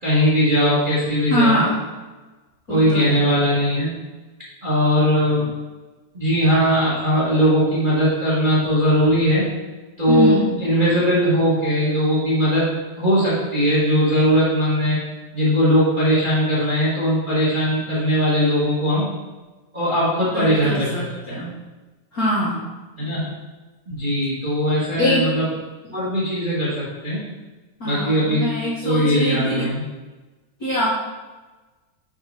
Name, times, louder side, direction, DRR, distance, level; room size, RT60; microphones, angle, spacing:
voice 1, 0.0-1.6 2.7-3.9 4.6-5.5 6.1-9.5 10.0-12.7 13.0-15.0 15.3-19.1 19.7-20.9 21.3-21.4 23.0-23.3 23.9-25.5 25.9-27.2 27.8-28.6 28.8-29.8, equal, 30° right, -8 dB, 1.0 m, -19 dB
voice 2, 1.3-1.8 2.7-3.2 10.1-10.5 20.3-21.5 22.1-22.6 25.0-25.2 27.8-29.6 30.6-30.9, equal, 55° left, -8 dB, 1.0 m, -23 dB
5.4 x 4.5 x 5.4 m, 1.2 s
omnidirectional pair, 3.3 m